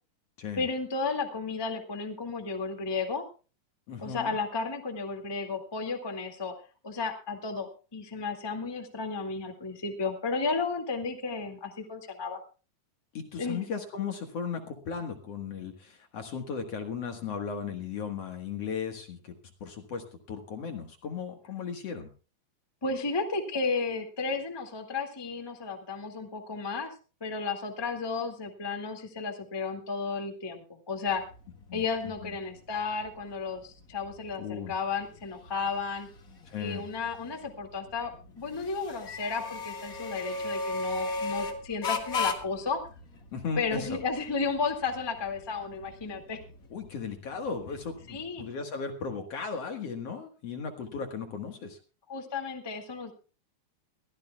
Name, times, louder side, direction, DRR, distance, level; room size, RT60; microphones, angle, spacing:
voice 1, 0.6-3.2 4.0-6.5 6.8-12.4 13.4-13.6 22.8-26.9 27.2-31.2 31.7-36.1 36.6-42.8 43.6-46.4 48.1-48.5 52.1-53.1, left 4 dB, 35° left, 3 dB, 0.4 m, -33 dB
voice 2, 3.9-4.4 13.1-22.1 31.7-31.8 32.2-32.3 34.4-34.7 36.5-36.8 43.3-44.0 46.7-51.8, left 6 dB, 55° left, 5 dB, 1.9 m, -36 dB
sound 1, 31.1-48.3, left 3 dB, 70° left, 0.8 m, -38 dB
23.0 x 15.0 x 2.3 m, 0.35 s
omnidirectional pair, 4.7 m